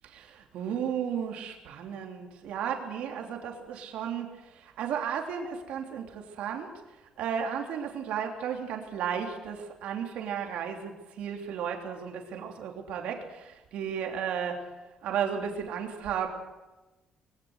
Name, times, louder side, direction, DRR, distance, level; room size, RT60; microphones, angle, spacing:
voice 1, 0.0-6.7 7.2-14.7 15.0-16.3, right 8 dB, 85° right, 3 dB, 3.2 m, -34 dB
22.5 x 17.5 x 8.0 m, 1.1 s
cardioid pair, 165°, 2 cm